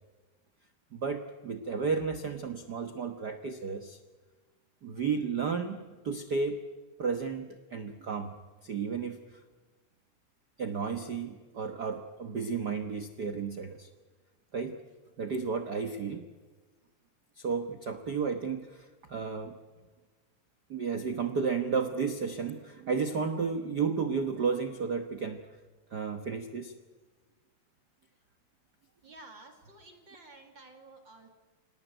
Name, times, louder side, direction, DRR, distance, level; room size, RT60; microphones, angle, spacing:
voice 1, 0.9-4.0 4.8-5.8 6.0-6.6 7.0-8.3 8.6-9.2 10.6-13.9 14.5-14.8 15.2-16.3 17.4-19.5 20.7-25.4 25.9-26.7, right 5 dB, 55° right, 7 dB, 1.1 m, -32 dB
voice 2, 29.0-31.3, right 2 dB, 40° right, 5 dB, 2.8 m, -52 dB
26.0 x 18.5 x 9.2 m, 1.3 s
omnidirectional pair, 3.5 m